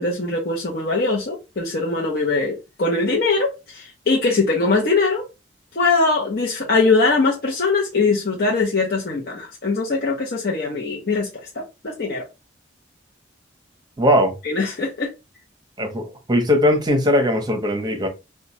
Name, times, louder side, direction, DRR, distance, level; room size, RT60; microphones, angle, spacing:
voice 1, 0.0-5.2 5.7-12.3 14.4-15.1, left 3 dB, 50° left, 0.7 m, -21 dB
voice 2, 14.0-14.3 15.8-18.1, left 1 dB, 20° right, 0.7 m, -19 dB
2.8 x 2.2 x 4.0 m
head